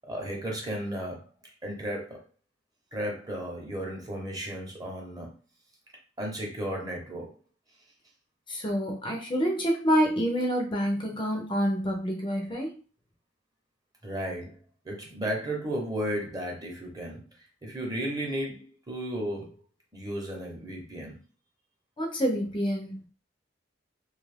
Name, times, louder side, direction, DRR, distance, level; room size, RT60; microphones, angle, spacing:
voice 1, 0.0-1.3 1.6-2.2 2.9-5.4 6.2-7.3 14.0-14.6 14.8-17.2 17.6-19.5 19.9-21.1, right 1 dB, 20° right, -1 dB, 0.8 m, -34 dB
voice 2, 8.5-12.7 22.0-23.0, equal, 25° left, 0 dB, 0.6 m, -27 dB
2.7 x 2.3 x 3.3 m, 0.36 s
head